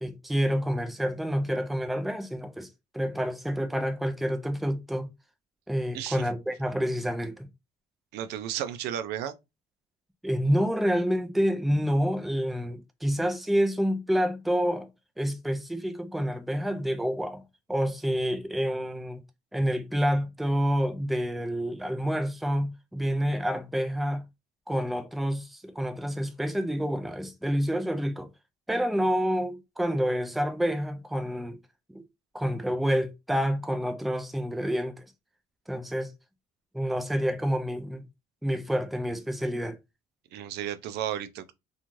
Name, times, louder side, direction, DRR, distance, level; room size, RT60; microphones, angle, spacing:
voice 1, 0.0-2.7 2.9-5.1 5.7-7.5 10.2-14.9 15.2-17.4 17.7-19.2 19.5-24.2 24.7-28.3 28.7-31.6 31.9-32.0 32.3-35.0 35.7-36.1 36.7-38.0 38.4-39.8, equal, ahead, 0.4 m, -28 dB
voice 2, 8.1-9.3 40.3-41.5, right 10 dB, 80° right, 0.4 m, -33 dB
3.0 x 2.3 x 2.5 m
cardioid pair, 110°, 17 cm